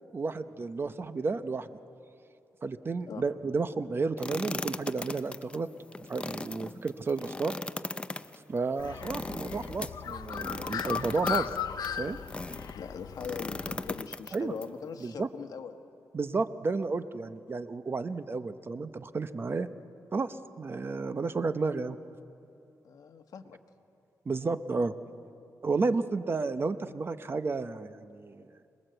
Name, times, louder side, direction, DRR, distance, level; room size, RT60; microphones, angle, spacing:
voice 1, 0.1-1.7 2.6-5.7 6.1-7.5 8.5-11.5 12.0-12.2 14.3-14.5 15.0-15.3 16.1-19.7 20.1-22.0 24.3-24.9 25.6-28.4, right 4 dB, 35° right, 11 dB, 0.8 m, -32 dB
sound 1, 4.2-12.7 13.2-14.6, left 2 dB, 15° left, 0.5 m, -38 dB
Bird, 8.8-14.0, left 8 dB, 85° left, 0.6 m, -37 dB
voice 2, 12.7-15.7 22.8-23.6, left 6 dB, 70° left, 7 dB, 1.3 m, -41 dB
26.5 x 20.5 x 7.9 m, 2.6 s
wide cardioid pair, 120°, 7 cm